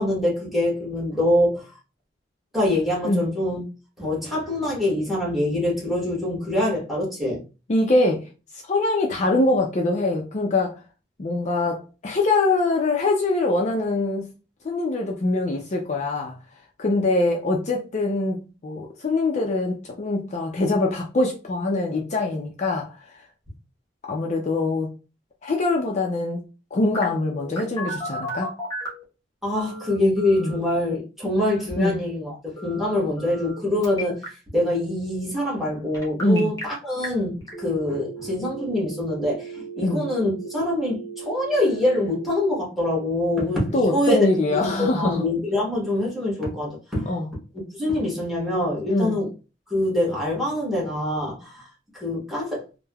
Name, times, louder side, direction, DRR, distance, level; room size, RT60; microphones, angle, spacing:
voice 1, 0.0-1.7 2.5-3.6 4.0-7.4 29.4-47.1 47.8-49.3 49.7-51.7 51.9-52.6, left 1 dB, ahead, 1.1 m, -24 dB
voice 2, 7.7-8.2 8.7-10.8 11.2-14.2 14.6-16.3 16.8-22.9 24.1-24.9 25.4-26.4 26.7-28.5 30.4-30.5 31.8-32.0 36.2-36.5 39.8-40.0 43.7-45.2 47.1-47.3 48.9-49.2, left 2 dB, 40° left, 0.4 m, -23 dB
Telephone, 26.9-29.0 29.5-30.6 32.6-33.6 33.8-34.3 35.9-36.6 37.0-37.1 37.5-42.5, right 2 dB, 20° left, 1.0 m, -36 dB
3.3 x 2.1 x 2.2 m
head